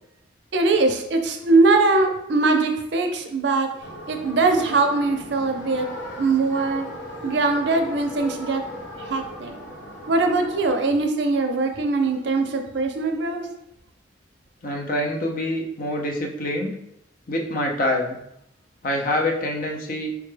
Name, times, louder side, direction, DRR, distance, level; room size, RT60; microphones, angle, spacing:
voice 1, 0.5-3.7 4.1-5.9 6.2-6.9 7.2-8.6 9.1-9.5 10.1-13.5, right 3 dB, 65° right, 4 dB, 0.5 m, -21 dB
sound 1, 3.8-10.7, left 1 dB, 65° left, 1.2 m, -38 dB
voice 2, 14.6-16.7 17.3-18.2 18.8-20.1, left 1 dB, 50° left, 1 dB, 0.6 m, -25 dB
4.6 x 2.2 x 3.2 m, 0.78 s
head